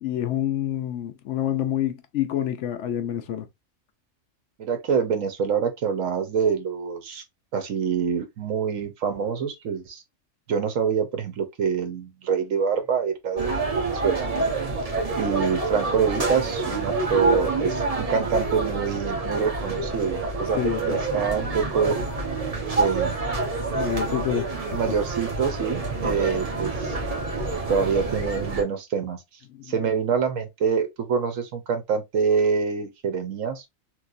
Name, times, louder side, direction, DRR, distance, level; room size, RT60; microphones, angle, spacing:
voice 1, 0.0-3.5 20.5-21.0 23.7-24.6 26.0-26.1 29.5-29.7, left 11 dB, 70° left, 0.9 m, -27 dB
voice 2, 4.6-7.2 7.5-10.0 10.5-14.3 15.2-22.1 22.8-23.2 24.7-27.0 27.7-29.2 29.7-33.6, right 6 dB, 80° right, 1.2 m, -26 dB
sound 1, 13.4-28.6, right 3 dB, 30° right, 0.9 m, -27 dB
3.2 x 3.0 x 2.5 m
omnidirectional pair, 1.3 m